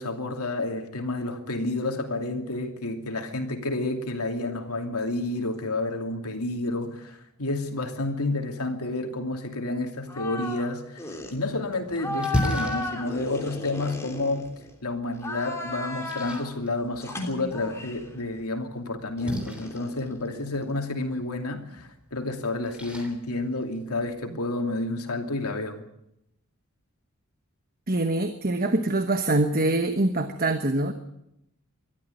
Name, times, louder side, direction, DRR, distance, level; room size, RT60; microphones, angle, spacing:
voice 1, 0.0-14.5 14.8-25.8, left 2 dB, 85° left, 4 dB, 2.7 m, -30 dB
sound 1, 10.1-10.7 11.0-11.3 11.9-14.7 15.1-16.5 17.0-18.1 19.2-21.0, left 2 dB, 15° left, 3.1 m, -35 dB
Splash splatter, 11.2-24.2, equal, 5° right, 3.4 m, -37 dB
voice 2, 27.9-30.9, right 2 dB, 40° right, 8 dB, 1.2 m, -24 dB
21.5 x 13.0 x 9.6 m, 0.82 s
head